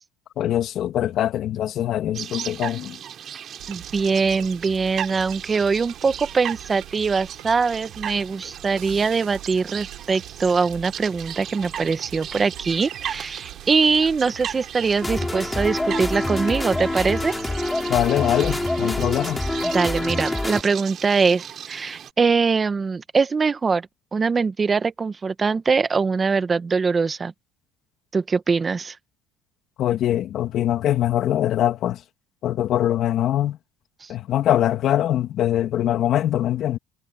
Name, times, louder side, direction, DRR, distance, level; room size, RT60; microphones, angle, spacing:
voice 1, 0.4-3.0 17.9-19.4 29.8-32.0 32.4-33.6 34.1-36.8, left 12 dB, 50° left, 2.5 m, -22 dB
sound 1, 2.1-22.1, right 9 dB, 45° right, 3.0 m, -37 dB
sound 2, 3.6-20.2, right 20 dB, 75° right, 6.9 m, -43 dB
voice 2, 3.7-17.3 19.6-23.9 24.1-27.3 28.1-28.9 34.0-34.1, right 5 dB, 25° right, 1.6 m, -22 dB
sound 3, 15.0-20.6, left 2 dB, 10° left, 5.7 m, -26 dB
cardioid pair, 120°, 0 cm